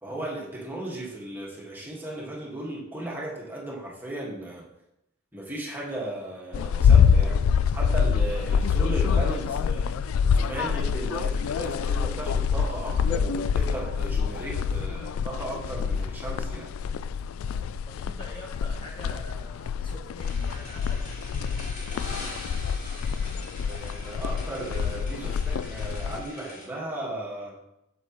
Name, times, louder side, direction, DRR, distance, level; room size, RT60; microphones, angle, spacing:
voice 1, 0.0-4.7 5.3-7.4 7.7-9.9 10.3-16.7 23.7-27.6, right 1 dB, 10° right, -4 dB, 1.7 m, -36 dB
sound 1, 6.5-26.2, left 6 dB, 85° left, 0.3 m, -26 dB
voice 2, 17.9-21.6, left 1 dB, 25° left, -2 dB, 1.1 m, -45 dB
sound 2, 20.2-26.7, left 1 dB, 45° left, 2.6 m, -43 dB
8.8 x 7.1 x 3.1 m, 0.84 s
head